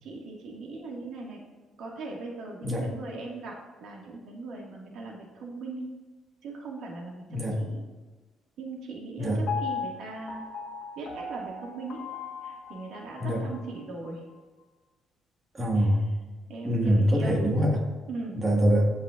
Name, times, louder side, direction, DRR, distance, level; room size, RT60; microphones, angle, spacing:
voice 1, 0.0-1.4 1.8-5.9 6.4-7.8 8.6-10.5 11.0-12.0 12.4-14.2 15.8-15.9 16.5-17.3 18.1-18.4, right 3 dB, 75° right, -1 dB, 1.9 m, -39 dB
voice 2, 7.3-7.6 9.2-9.4 13.2-13.4 15.5-16.1 16.6-17.8 18.3-18.9, equal, 25° right, 0 dB, 1.7 m, -24 dB
Piano, 9.5-13.6 14.0-14.1, left 5 dB, 60° left, 1.3 m, -37 dB
16.5 x 5.5 x 2.5 m, 1.3 s
cardioid pair, 105°, 0 cm